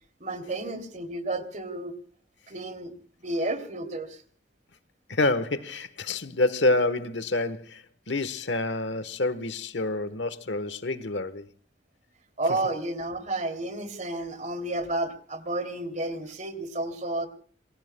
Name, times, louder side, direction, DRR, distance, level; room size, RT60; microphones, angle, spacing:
voice 1, 0.2-2.0 2.5-2.9 3.2-4.2 12.4-17.3, right 2 dB, 45° right, 2.9 m, -31 dB
voice 2, 5.1-11.5, left 2 dB, 90° left, 1.2 m, -27 dB
27.5 x 22.5 x 2.2 m
head